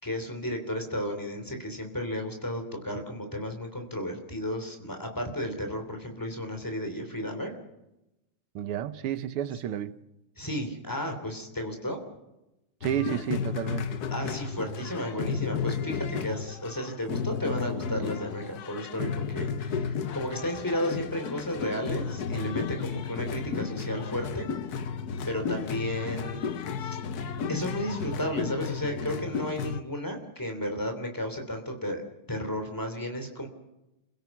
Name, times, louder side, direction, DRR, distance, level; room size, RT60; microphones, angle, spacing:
voice 1, 0.0-7.5 10.4-12.0 14.1-24.5 25.2-26.4 26.8-27.0 27.5-32.0 32.3-33.5, equal, 10° left, 5 dB, 3.0 m, -33 dB
voice 2, 8.6-10.0 12.8-14.0, right 10 dB, 85° right, 13 dB, 1.9 m, -31 dB
sound 1, 12.8-29.8, left 6 dB, 55° left, 1.2 m, -33 dB
28.0 x 16.5 x 6.0 m, 0.94 s
omnidirectional pair, 2.4 m